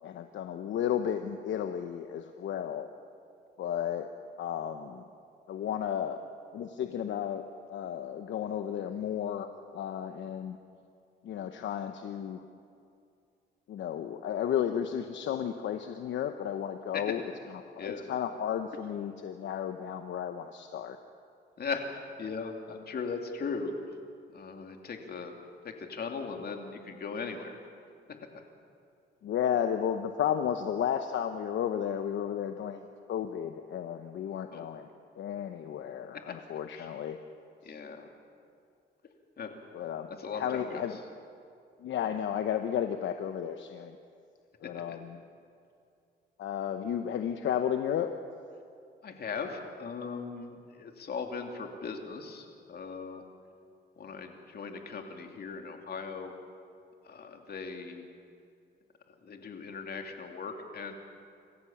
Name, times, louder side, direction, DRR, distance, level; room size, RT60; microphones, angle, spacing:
voice 1, 0.0-2.9 3.6-4.1 4.4-5.1 5.5-6.2 6.5-10.6 11.2-12.4 13.7-17.2 17.5-21.0 29.2-34.9 35.2-37.2 39.7-40.1 40.3-41.0 41.8-44.0 44.6-45.2 46.4-48.1, left 9 dB, 70° left, 7 dB, 1.0 m, -33 dB
voice 2, 21.6-23.7 24.3-25.3 25.6-27.6 28.1-28.2 34.5-34.7 36.7-36.9 37.6-38.1 39.4-39.5 40.1-40.9 44.6-45.0 49.0-53.2 54.0-56.3 57.0-58.1 59.2-60.9, left 5 dB, 50° left, 4 dB, 2.6 m, -38 dB
27.0 x 15.0 x 7.2 m, 2.4 s
cardioid pair, 90°, 20 cm